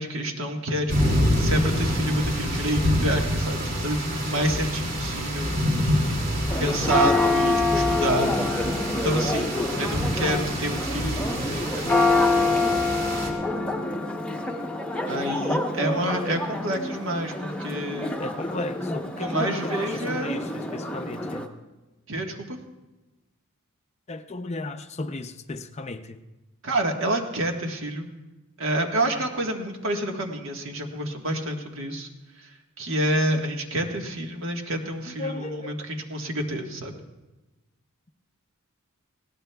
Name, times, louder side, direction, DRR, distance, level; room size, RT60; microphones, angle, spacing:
voice 1, 0.0-5.5 6.6-12.0 15.1-18.2 19.2-20.4 22.1-22.6 26.6-28.1 28.6-32.1 32.4-37.0, right 1 dB, 60° right, 3 dB, 1.5 m, -28 dB
sound 1, 0.9-13.3, equal, 45° right, 2.4 m, -27 dB
Church bell, 6.5-21.5, left 2 dB, 5° left, 0.8 m, -26 dB
voice 2, 18.2-21.5 24.1-26.2 35.2-35.7, left 2 dB, 30° left, 8 dB, 0.5 m, -35 dB
20.0 x 17.0 x 2.3 m, 1.1 s
head